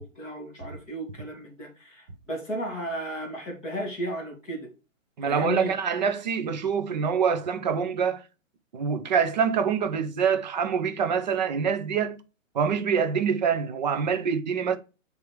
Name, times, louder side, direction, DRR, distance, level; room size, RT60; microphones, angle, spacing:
voice 1, 0.0-4.7 5.2-5.7, equal, ahead, 0.5 m, -34 dB
voice 2, 5.2-8.2 8.7-12.2 12.5-14.8, right 6 dB, 35° right, 0.9 m, -25 dB
7.9 x 3.6 x 4.7 m
hypercardioid pair, 165°, 40 cm